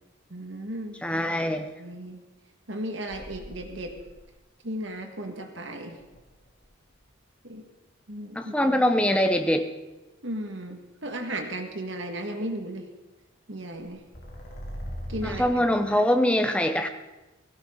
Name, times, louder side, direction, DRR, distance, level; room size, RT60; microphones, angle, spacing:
voice 1, 0.3-1.0 1.8-2.2 2.7-4.0 4.6-6.0 7.4-7.6 8.1-8.8 10.2-12.9 13.5-14.0 15.1-15.6, right 1 dB, 65° right, 4 dB, 2.1 m, -35 dB
voice 2, 1.0-1.7 8.4-9.7 15.2-16.9, equal, 5° left, 6 dB, 1.0 m, -23 dB
sound 1, 3.1-4.3 6.0-6.9 13.8-15.6, equal, 50° left, 3.6 m, -39 dB
17.0 x 16.5 x 4.1 m, 1.1 s
head